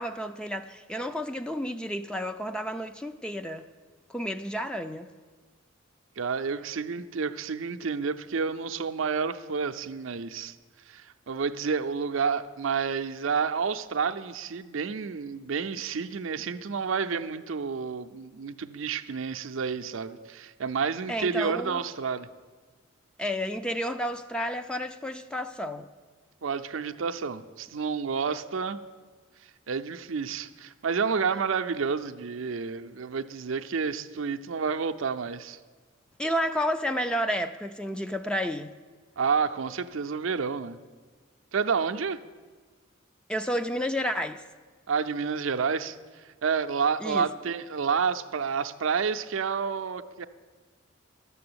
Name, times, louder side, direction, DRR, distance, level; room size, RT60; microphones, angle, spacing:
voice 1, 0.0-3.7 4.1-5.1 21.1-21.8 23.2-25.9 28.3-28.4 36.2-38.7 43.3-44.4 47.0-47.2, equal, 5° left, 0.3 m, -31 dB
voice 2, 6.2-10.5 10.9-22.3 26.4-28.8 29.7-35.6 39.2-40.8 41.5-42.2 44.9-50.3, right 5 dB, 70° right, 0.5 m, -30 dB
11.5 x 7.0 x 8.6 m
head